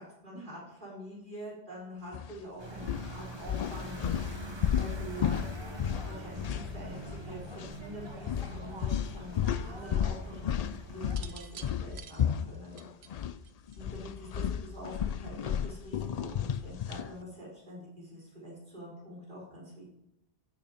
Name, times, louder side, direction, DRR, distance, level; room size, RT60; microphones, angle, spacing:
voice 1, 0.0-5.4 6.0-13.1 13.7-19.9, equal, 50° right, -5 dB, 4.8 m, -46 dB
sound 1, 2.1-2.3 2.8-7.3 7.5-7.7 8.3-13.4 13.7-17.1, left 9 dB, 55° left, 0.4 m, -33 dB
sound 2, 2.6-11.2, right 1 dB, 25° right, 1.4 m, -43 dB
sound 3, 11.0-14.2 15.3-15.6, right 8 dB, 75° right, 1.0 m, -50 dB
15.5 x 6.8 x 5.1 m, 0.84 s
omnidirectional pair, 1.1 m